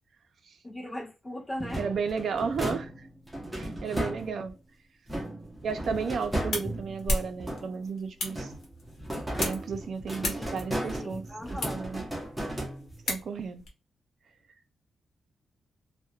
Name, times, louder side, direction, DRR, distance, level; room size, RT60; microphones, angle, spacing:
voice 1, 0.6-1.8 3.8-4.1 10.4-10.5 11.0-11.8, left 1 dB, 20° left, 1.1 m, -39 dB
sound 1, 1.6-4.6 5.1-7.9 8.3-13.2, right 1 dB, 5° right, 0.6 m, -35 dB
voice 2, 1.8-2.9 3.5-4.5 5.6-8.5 9.4-12.0 13.1-13.6, right 5 dB, 50° right, 0.4 m, -33 dB
sound 2, 5.9-13.7, left 1 dB, 70° left, 0.9 m, -37 dB
2.9 x 2.1 x 2.2 m
wide cardioid pair, 170°, 0 cm